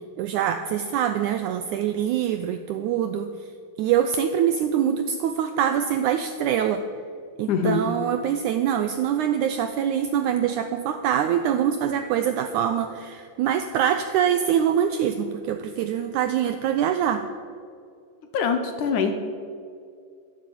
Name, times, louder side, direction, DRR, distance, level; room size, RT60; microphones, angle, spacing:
voice 1, 0.2-3.3 3.8-6.8 7.4-17.3, right 9 dB, 90° right, 8 dB, 1.7 m, -24 dB
voice 2, 7.5-7.9 18.3-19.2, left 5 dB, 65° left, 6 dB, 2.3 m, -23 dB
12.0 x 11.5 x 8.5 m, 2.3 s
omnidirectional pair, 4.1 m